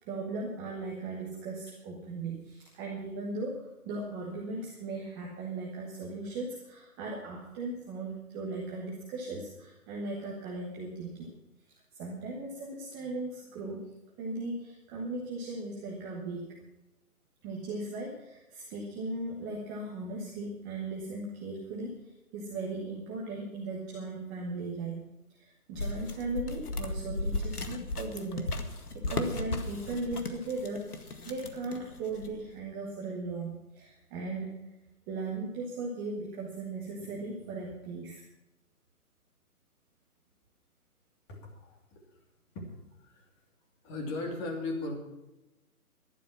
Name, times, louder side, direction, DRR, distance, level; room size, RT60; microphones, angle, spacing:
voice 1, 0.0-11.3 11.9-13.8 14.2-16.6 17.4-22.0 22.3-25.0 25.4-34.7 35.1-38.2, right 2 dB, 10° right, -2 dB, 0.9 m, -38 dB
sound 1, 25.7-32.5, left 2 dB, 75° left, 2.0 m, -36 dB
voice 2, 41.3-42.0 42.5-42.7 43.0-43.3 43.8-45.0, left 2 dB, 20° left, 1 dB, 2.8 m, -37 dB
13.5 x 11.5 x 5.8 m, 0.99 s
figure-of-eight pair, 150°, 45 cm